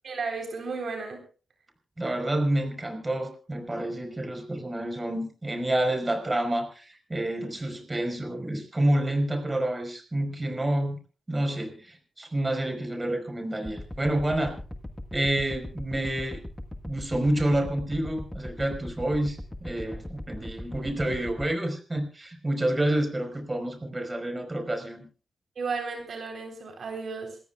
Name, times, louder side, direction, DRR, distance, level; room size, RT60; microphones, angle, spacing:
voice 1, 0.0-1.2 25.6-27.4, right 4 dB, 65° right, 3 dB, 3.8 m, -33 dB
voice 2, 2.0-11.0 11.3-14.5 15.1-16.4 16.9-25.1, right 1 dB, 25° right, 5 dB, 4.7 m, -28 dB
sound 1, 13.6-21.5, left 1 dB, 15° left, 1.5 m, -38 dB
27.5 x 14.5 x 2.4 m, 0.35 s
cardioid pair, 75°, 0 cm